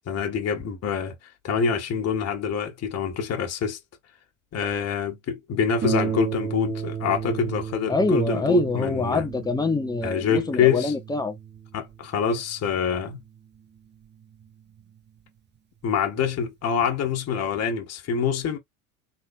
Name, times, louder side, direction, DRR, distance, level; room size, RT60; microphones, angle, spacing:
voice 1, 0.1-1.1 1.4-3.8 4.5-9.2 10.0-10.9 11.7-13.2 15.8-18.6, left 6 dB, 35° left, 1.8 m, -25 dB
Harp, 5.8-15.0 15.8-15.9 16.4-16.5, right 7 dB, 25° right, 1.0 m, -34 dB
voice 2, 7.9-11.4, left 3 dB, 10° left, 1.3 m, -25 dB
4.1 x 3.7 x 2.5 m
figure-of-eight pair, 75°, 43 cm